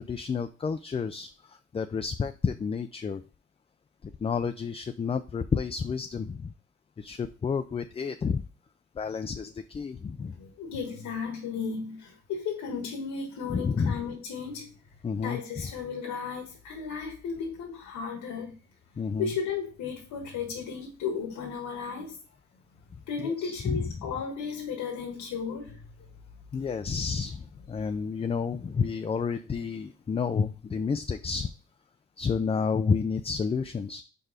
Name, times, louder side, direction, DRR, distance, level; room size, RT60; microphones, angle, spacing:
voice 1, 0.0-3.2 4.0-6.5 7.0-8.4 9.0-10.4 13.5-14.0 15.0-15.4 19.0-19.3 23.2-23.9 26.5-31.5 32.2-34.0, left 5 dB, 20° left, 0.3 m, -30 dB
voice 2, 10.3-14.7 15.2-18.5 19.2-22.2 23.1-25.8 27.8-27.9, left 5 dB, 90° left, 1.5 m, -34 dB
4.6 x 4.6 x 4.9 m
cardioid pair, 90°, 30 cm